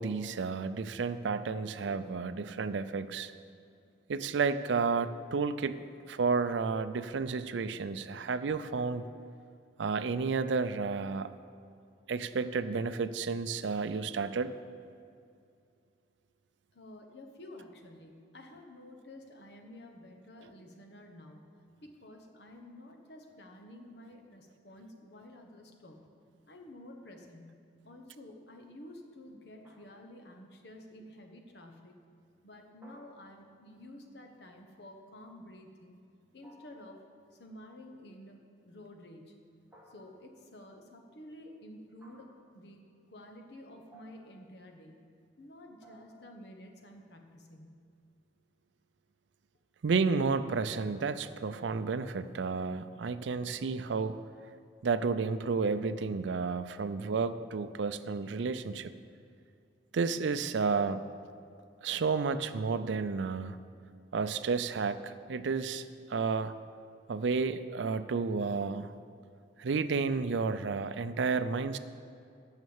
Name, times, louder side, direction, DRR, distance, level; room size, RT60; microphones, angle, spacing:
voice 1, 0.0-3.3 4.1-5.8 6.1-9.1 9.8-11.3 12.1-14.6 49.8-54.1 54.8-58.9 59.9-61.1 61.8-63.6 64.1-65.8 66.1-66.5 67.1-68.9 69.6-71.8, right 4 dB, 75° right, 12 dB, 0.4 m, -31 dB
voice 2, 16.7-21.5 21.8-26.1 26.5-32.0 32.4-36.0 36.3-39.3 39.9-45.1 45.4-47.8, left 1 dB, 60° left, 3 dB, 1.1 m, -51 dB
sound 1, 29.6-30.3 32.8-33.7 36.4-37.0 39.7-40.4 42.0-42.5 43.9-44.5 45.8-46.5, equal, 10° right, 1.4 m, -59 dB
9.3 x 6.6 x 7.2 m, 2.4 s
head